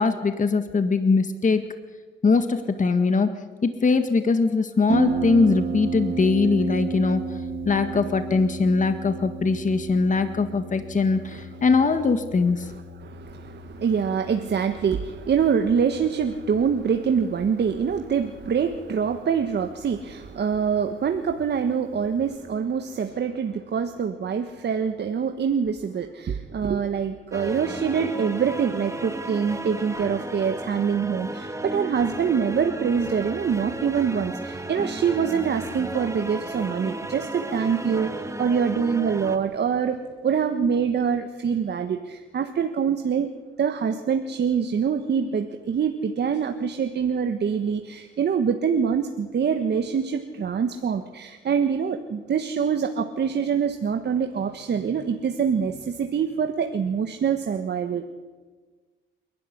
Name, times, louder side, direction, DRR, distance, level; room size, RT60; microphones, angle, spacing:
voice 1, 0.0-1.6 2.2-3.3 3.6-7.2 7.7-12.7, left 4 dB, 40° left, 8 dB, 1.8 m, -21 dB
Harp, 4.9-22.4, right 4 dB, 80° right, 2.4 m, -34 dB
voice 2, 12.6-43.3 43.6-58.1, right 6 dB, 60° right, 6 dB, 1.5 m, -25 dB
sound 1, 27.3-39.4, right 2 dB, 15° right, 2.1 m, -34 dB
28.0 x 12.5 x 9.8 m, 1.4 s
cardioid pair, 80°, 20 cm